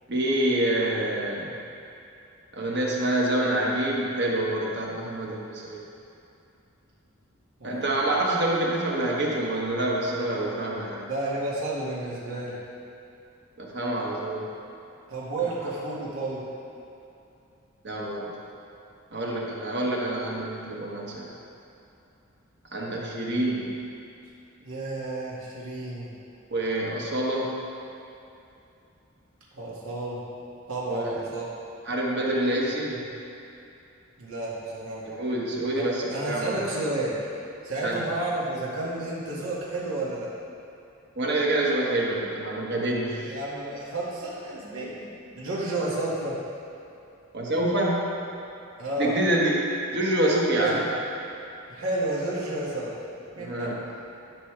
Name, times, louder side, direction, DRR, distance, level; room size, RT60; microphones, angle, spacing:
voice 1, 0.1-1.5 2.5-5.8 7.6-11.1 13.6-14.5 17.8-18.3 19.1-21.3 22.7-23.8 26.5-27.6 30.9-31.2 31.8-33.0 35.0-36.6 37.8-38.0 41.2-43.3 47.3-48.1 49.0-50.8 53.4-53.8, right 1 dB, 55° right, -3 dB, 1.4 m, -27 dB
voice 2, 7.6-8.2 11.1-12.6 15.1-16.4 24.6-26.1 29.5-30.2 30.7-31.5 34.2-35.0 35.7-37.2 37.6-40.3 43.2-46.3 48.8-49.1 50.6-50.8 51.7-52.9 53.4-53.7, right 2 dB, 90° right, -6 dB, 2.0 m, -31 dB
12.5 x 5.8 x 3.4 m, 2.7 s
head